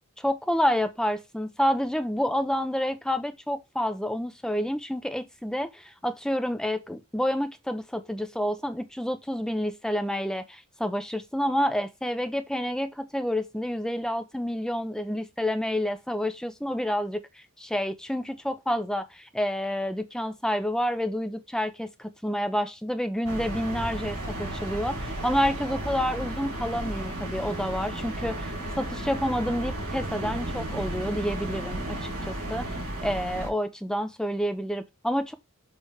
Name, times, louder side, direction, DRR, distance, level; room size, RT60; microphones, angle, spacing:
voice 1, 0.2-17.2 17.6-32.7 33.0-35.3, equal, 5° left, 0.5 m, -29 dB
sound 1, 23.2-33.5, right 1 dB, 90° right, 3.7 m, -33 dB
6.4 x 3.3 x 4.8 m
head